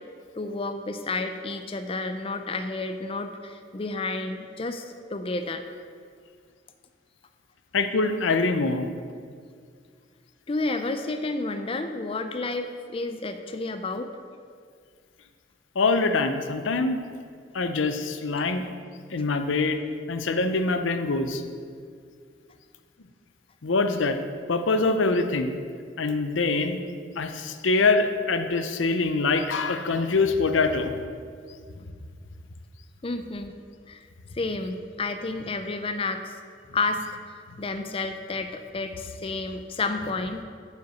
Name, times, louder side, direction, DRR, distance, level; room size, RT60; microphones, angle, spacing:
voice 1, 0.4-5.6 10.5-14.1 33.0-33.5 33.9-34.1 34.3-36.4 36.7-40.4, left 3 dB, 30° left, 8 dB, 0.5 m, -31 dB
voice 2, 7.7-8.9 15.7-17.0 17.5-18.6 19.1-19.8 20.1-21.4 23.6-24.2 24.5-25.5 26.0-26.8 27.2-30.9, left 3 dB, 90° left, 8 dB, 0.7 m, -24 dB
8.9 x 5.8 x 7.7 m, 2.1 s
head